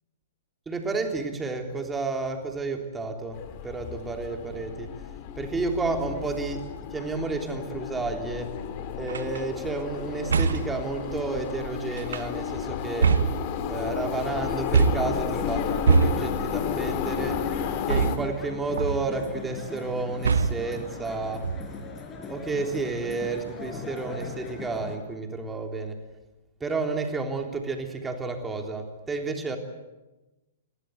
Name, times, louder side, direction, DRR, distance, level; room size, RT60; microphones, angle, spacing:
voice 1, 0.7-5.0 5.4-8.6 8.9-13.2 13.6-17.4 17.9-21.5 22.3-26.0 26.6-29.6, right 3 dB, 10° right, 4 dB, 3.5 m, -31 dB
sound 1, 3.3-18.2, left 8 dB, 35° left, 2.7 m, -32 dB
sound 2, 9.1-9.4 10.3-10.8 12.0-12.5 13.0-13.9 14.7-15.2 15.9-16.5 17.9-18.5 18.8-19.2 20.2-20.8 21.4-21.9, right 5 dB, 65° right, 1.0 m, -24 dB
sound 3, 14.9-25.0, left 4 dB, 20° left, 4.8 m, -40 dB
29.0 x 22.0 x 8.3 m, 1.1 s
figure-of-eight pair, 110°, 0 cm